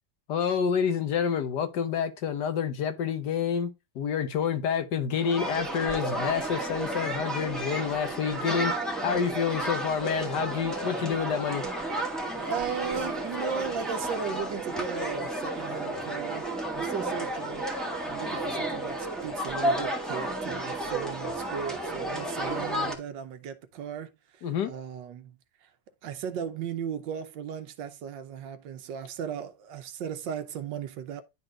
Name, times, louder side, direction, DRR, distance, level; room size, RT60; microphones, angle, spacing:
voice 1, 0.3-8.7 9.0-11.6 24.4-24.7, left 7 dB, 65° left, 1.4 m, -28 dB
sound 1, 5.2-23.0, right 1 dB, ahead, 1.3 m, -32 dB
voice 2, 12.4-16.5 16.7-17.7 18.0-25.7 26.0-31.2, right 7 dB, 75° right, 1.5 m, -36 dB
11.0 x 4.1 x 2.4 m
omnidirectional pair, 2.1 m